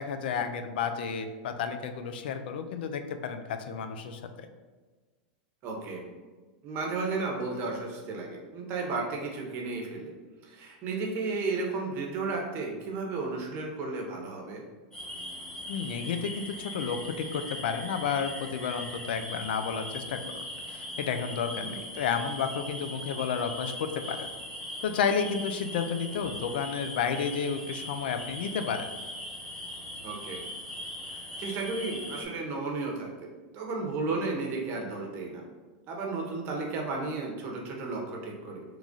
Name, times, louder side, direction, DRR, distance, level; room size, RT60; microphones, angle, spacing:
voice 1, 0.0-4.2 15.7-24.3 24.8-28.9, left 6 dB, 80° left, 8 dB, 0.4 m, -31 dB
voice 2, 5.6-6.0 6.6-10.1 10.4-14.6 21.5-21.8 30.0-30.4 31.1-33.3 33.5-35.4 35.9-38.6, right 3 dB, 45° right, 0 dB, 0.8 m, -33 dB
sound 1, 14.9-32.3, left 1 dB, 10° left, 1.0 m, -40 dB
3.0 x 2.4 x 3.7 m, 1.3 s
supercardioid pair, 120°, 5 cm